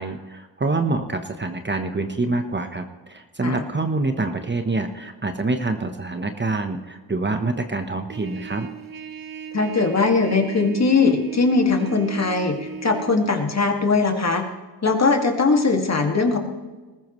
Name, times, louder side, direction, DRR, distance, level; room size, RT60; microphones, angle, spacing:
voice 1, 0.0-8.7, right 3 dB, 25° right, 6 dB, 1.1 m, -26 dB
Trumpet, 8.1-13.1, right 6 dB, 50° right, 1.2 m, -37 dB
voice 2, 9.5-14.5 14.8-16.4, left 4 dB, 35° left, 3 dB, 2.2 m, -20 dB
20.0 x 14.0 x 3.2 m, 1.3 s
cardioid pair, 80°, 43 cm